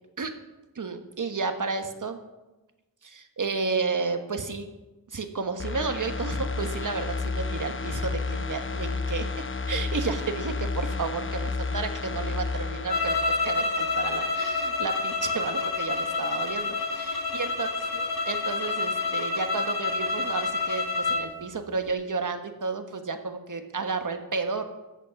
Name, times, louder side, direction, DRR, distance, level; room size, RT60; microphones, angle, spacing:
voice 1, 0.7-2.2 3.0-4.7 5.1-9.3 9.7-13.2 13.4-24.6, right 4 dB, 55° right, 7 dB, 1.3 m, -32 dB
sound 1, 5.6-14.3 14.6-14.7, left 4 dB, 35° left, 0.8 m, -32 dB
sound 2, 12.9-21.3, left 3 dB, 85° left, 1.8 m, -28 dB
14.0 x 8.3 x 5.8 m, 1.1 s
wide cardioid pair, 70°, 36 cm